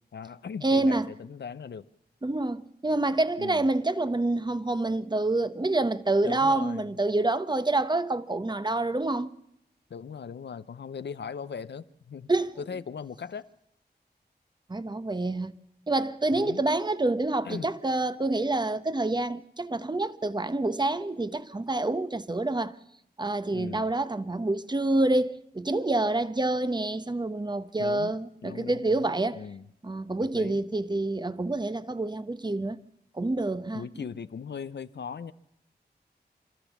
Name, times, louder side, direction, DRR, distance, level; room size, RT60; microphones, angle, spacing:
voice 1, 0.1-1.9 3.4-3.6 6.2-6.9 9.9-12.3 12.6-13.5 16.3-16.6 17.4-17.7 23.5-23.9 27.8-28.2 28.4-29.7 30.2-30.6 33.7-35.3, left 6 dB, 85° left, 0.7 m, -39 dB
voice 2, 0.6-1.1 2.2-9.3 12.3-12.5 14.7-15.5 15.9-22.7 23.2-29.4 29.8-32.8 33.1-33.8, right 2 dB, 25° right, 0.9 m, -27 dB
26.5 x 13.5 x 7.2 m
wide cardioid pair, 70°, 17 cm